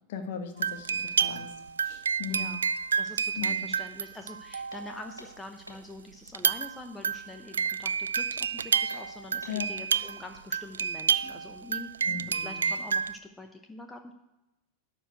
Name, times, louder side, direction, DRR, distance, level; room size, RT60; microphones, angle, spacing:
voice 1, 0.1-1.5 1.8-2.5 3.4-3.7 9.5-9.7 12.0-12.7, left 7 dB, 50° left, 6 dB, 1.3 m, -38 dB
sound 1, 0.6-5.2 6.3-13.2, right 6 dB, 70° right, 0.3 m, -30 dB
voice 2, 2.3-2.7 3.0-11.9 12.3-14.1, left 2 dB, 10° left, 5 dB, 0.8 m, -45 dB
sound 2, 4.7-6.0 8.8-10.3, right 1 dB, 85° right, 1.0 m, -49 dB
12.0 x 4.6 x 7.9 m, 0.99 s
figure-of-eight pair, 90°, 0 cm